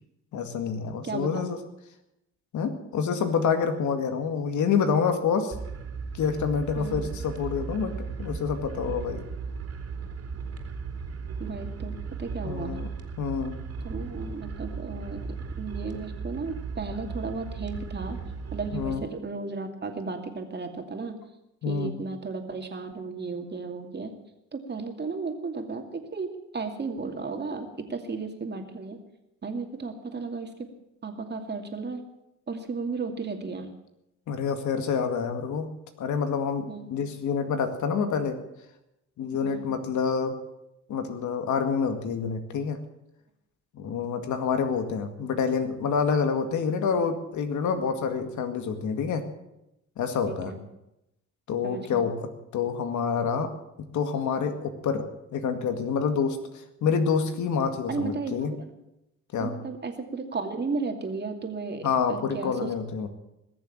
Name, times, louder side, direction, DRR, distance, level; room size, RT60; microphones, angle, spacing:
voice 1, 0.3-1.6 2.5-5.5 6.1-9.3 12.4-12.9 13.2-13.6 18.7-19.0 21.6-22.0 34.3-35.7 36.0-38.4 39.2-40.4 40.9-42.8 43.7-49.2 50.0-50.6 51.5-53.5 53.8-55.1 55.3-58.6 59.3-59.6 61.8-63.1, left 6 dB, 75° left, 7 dB, 2.1 m, -27 dB
voice 2, 1.0-1.5 6.8-7.1 11.4-11.9 12.2-12.8 13.8-15.2 15.6-18.2 18.5-21.1 21.7-24.1 24.5-29.0 29.4-30.5 31.0-32.0 32.5-33.7 36.7-36.9 39.4-39.6 50.3-50.6 51.6-52.1 57.9-58.6 59.4-62.7, right 4 dB, 35° right, 4 dB, 2.5 m, -34 dB
sound 1, 5.5-19.0, right 5 dB, 50° right, 3.2 m, -36 dB
21.0 x 7.1 x 8.8 m, 0.87 s
cardioid pair, 90°, 30 cm